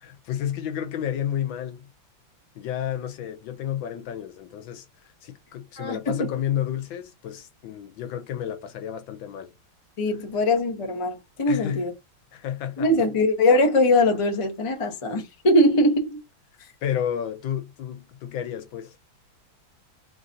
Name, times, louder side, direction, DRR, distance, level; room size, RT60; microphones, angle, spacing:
voice 1, 0.0-1.9 2.5-4.8 5.2-9.5 11.5-11.8 12.3-12.9 16.8-18.9, left 10 dB, 80° left, 1.4 m, -31 dB
voice 2, 5.8-6.3 10.0-11.9 12.8-16.2, left 1 dB, 45° left, 0.4 m, -21 dB
3.7 x 2.6 x 3.9 m
omnidirectional pair, 2.1 m